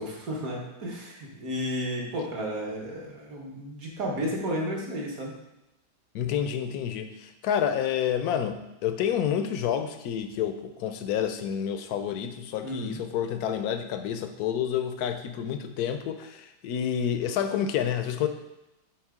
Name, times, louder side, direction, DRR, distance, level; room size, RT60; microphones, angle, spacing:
voice 1, 0.0-5.3 12.6-13.0, equal, 60° right, -2 dB, 1.8 m, -33 dB
voice 2, 6.1-18.3, left 9 dB, 70° left, 8 dB, 1.0 m, -29 dB
7.2 x 3.5 x 5.0 m, 0.92 s
omnidirectional pair, 1.8 m